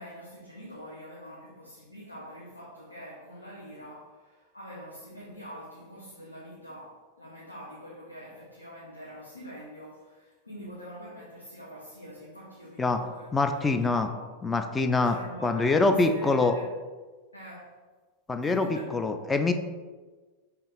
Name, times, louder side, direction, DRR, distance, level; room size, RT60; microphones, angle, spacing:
voice 1, 0.0-14.3 15.0-16.8 17.3-17.8 18.4-19.1, equal, 80° left, -5 dB, 0.7 m, -45 dB
voice 2, 13.3-14.1 14.4-15.2 15.4-16.5 18.3-19.5, left 3 dB, 15° left, 7 dB, 0.4 m, -24 dB
5.4 x 2.5 x 3.6 m, 1.3 s
figure-of-eight pair, 90°, 0 cm